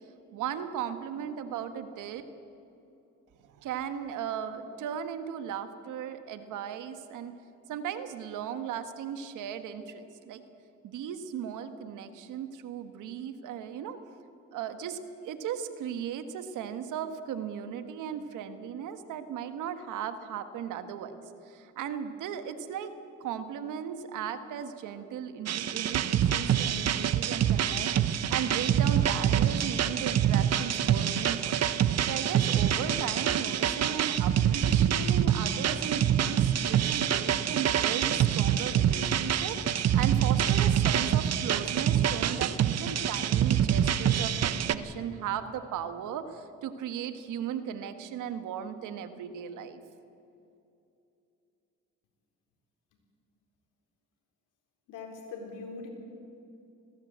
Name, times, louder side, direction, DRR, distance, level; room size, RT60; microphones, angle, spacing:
voice 1, 0.3-2.2 3.4-7.3 7.7-10.4 10.8-14.0 14.5-15.0 15.2-21.2 21.5-22.9 23.2-31.6 32.0-49.8, right 8 dB, 85° right, 9 dB, 1.6 m, -37 dB
sound 1, 25.5-44.7, right 9 dB, 55° right, 0.9 m, -26 dB
voice 2, 54.9-55.9, left 4 dB, 90° left, 1 dB, 4.2 m, -41 dB
20.5 x 17.0 x 8.1 m, 2.8 s
cardioid pair, 90°, 30 cm